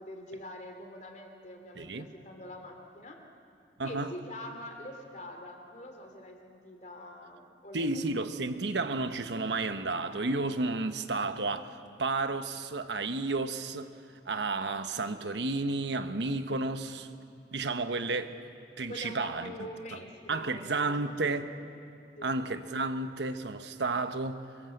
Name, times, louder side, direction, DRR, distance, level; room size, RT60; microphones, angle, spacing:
voice 1, 0.0-3.2 3.8-8.1 18.9-21.4 22.2-22.3, left 1 dB, 45° left, 2.8 m, -45 dB
voice 2, 1.8-2.1 3.8-4.1 7.7-13.9 14.2-17.1 17.5-18.4 18.8-19.5 20.3-21.5 22.2-24.5, right 3 dB, 85° right, 1.1 m, -32 dB
25.5 x 22.5 x 7.9 m
head